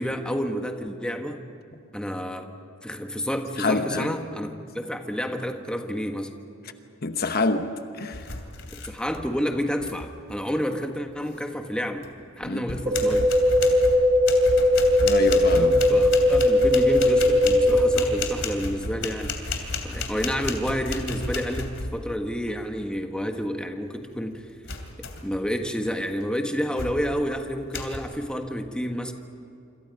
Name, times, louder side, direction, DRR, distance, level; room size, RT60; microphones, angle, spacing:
voice 1, 0.0-1.4 1.9-2.5 2.8-6.3 8.7-12.0 12.4-13.3 15.5-24.4 25.2-29.1, equal, 5° left, 1.4 m, -29 dB
voice 2, 3.6-4.1 7.0-7.7 8.0-8.3 12.4-12.8 15.0-15.7, left 3 dB, 50° left, 1.1 m, -26 dB
sound 1, 8.1-9.3 9.6-10.1 12.0-12.1 12.6-22.2 24.6-25.4 25.8-26.1 26.8-27.2 27.7-28.0, left 3 dB, 65° left, 3.0 m, -33 dB
sound 2, 12.9-17.9, left 1 dB, 35° right, 5.6 m, -19 dB
27.5 x 26.5 x 5.3 m
head